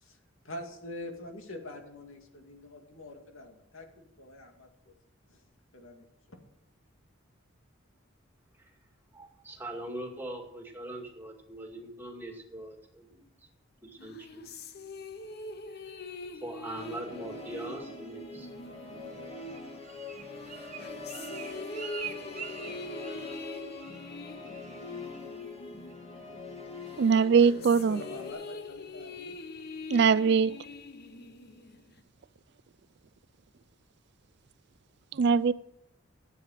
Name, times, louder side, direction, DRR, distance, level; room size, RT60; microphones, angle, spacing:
voice 1, 0.4-4.9 5.3-5.4 5.7-6.0 27.9-29.4, left 1 dB, 80° left, 2.2 m, -45 dB
voice 2, 9.1-13.3 13.8-14.5 15.7-15.8 16.3-18.5, right 1 dB, 10° right, 2.2 m, -41 dB
sound 1, 14.0-20.0 20.5-26.5 26.9-32.0, left 3 dB, 50° left, 0.9 m, -44 dB
Musical instrument, 16.8-28.3, left 2 dB, 30° left, 1.9 m, -43 dB
Bird, 19.4-23.5 23.8-24.2 24.4-24.8 25.1-25.5 25.9-26.0, right 9 dB, 40° right, 1.1 m, -44 dB
voice 3, 27.0-28.0 29.9-30.5 35.1-35.5, right 6 dB, 55° right, 0.4 m, -22 dB
13.0 x 8.5 x 6.4 m
head